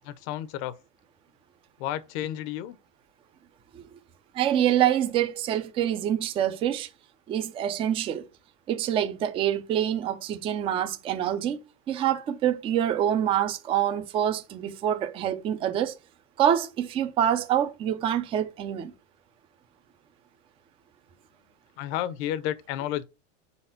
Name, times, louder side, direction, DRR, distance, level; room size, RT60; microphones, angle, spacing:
voice 1, 0.0-0.8 1.8-2.8 21.8-23.0, left 12 dB, 55° left, 0.8 m, -31 dB
voice 2, 4.3-6.9 7.3-8.2 8.7-11.6 11.9-15.9 16.4-18.9, right 10 dB, 15° right, 0.3 m, -26 dB
4.7 x 4.1 x 5.8 m
supercardioid pair, 160°, 40 cm